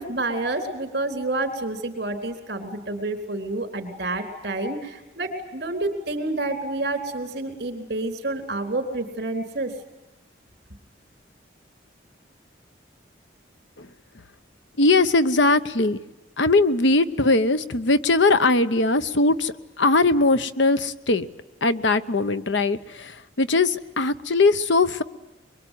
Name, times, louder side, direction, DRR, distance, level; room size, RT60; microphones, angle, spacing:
voice 1, 0.0-9.7, right 2 dB, 60° right, 5 dB, 4.1 m, -29 dB
voice 2, 14.8-16.0 16.4-21.3 21.6-23.1 23.4-25.0, left 3 dB, 80° left, 12 dB, 1.0 m, -20 dB
23.5 x 23.5 x 9.4 m, 1.0 s
head